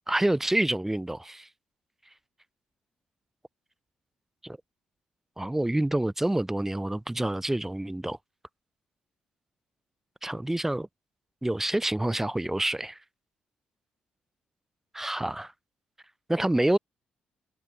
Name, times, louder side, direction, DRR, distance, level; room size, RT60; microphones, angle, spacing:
voice 1, 0.1-1.5 4.4-4.6 5.4-8.2 10.2-10.9 11.4-13.0 14.9-15.5 16.3-16.8, right 1 dB, 10° right, 0.3 m, -27 dB
hypercardioid pair, 50°, 4 cm